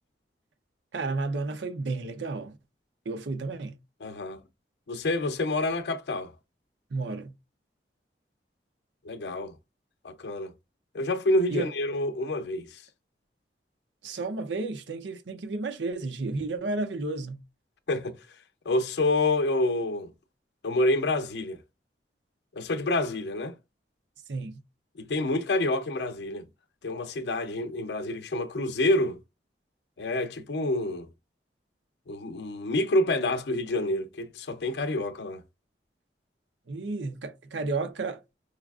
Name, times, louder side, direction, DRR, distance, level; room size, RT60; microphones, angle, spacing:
voice 1, 0.9-2.6 3.1-3.7 6.9-7.3 11.5-11.7 14.0-17.4 24.3-24.6 36.7-38.2, right 3 dB, 90° right, 0.6 m, -32 dB
voice 2, 4.0-4.4 4.9-6.3 9.0-9.5 10.0-10.5 10.9-12.8 17.9-18.2 18.7-20.1 20.6-21.6 22.5-23.6 25.0-26.5 26.8-29.2 30.0-31.1 32.1-35.4, left 2 dB, 75° left, 0.5 m, -28 dB
4.8 x 2.3 x 2.4 m
head